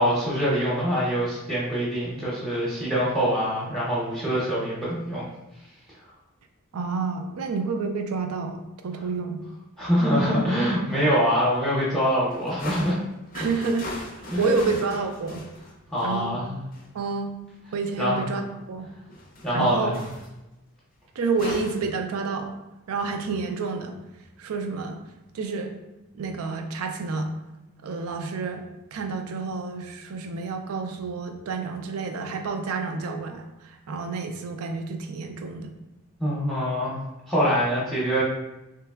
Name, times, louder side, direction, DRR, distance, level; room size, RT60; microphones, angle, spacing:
voice 1, 0.0-5.2 9.8-13.0 13.4-13.5 14.3-14.6 15.9-16.6 18.0-18.2 19.4-20.0 36.2-37.0 37.3-38.2, equal, ahead, -8 dB, 0.7 m, -24 dB
voice 2, 6.7-8.6 8.8-9.4 13.3-13.9 14.4-15.5 16.0-16.4 16.9-17.3 17.7-18.4 18.7-18.9 19.5-19.9 21.2-22.5 22.9-24.0 24.4-25.0 25.3-25.7 26.1-27.3 27.8-28.6 28.9-33.4 33.9-35.7, right 4 dB, 75° right, 6 dB, 0.4 m, -29 dB
sound 1, 12.3-16.3 16.7-16.9 19.1-19.7 19.9-20.3 21.3-21.8, left 1 dB, 40° left, 0.4 m, -38 dB
3.2 x 2.8 x 2.3 m, 0.97 s
head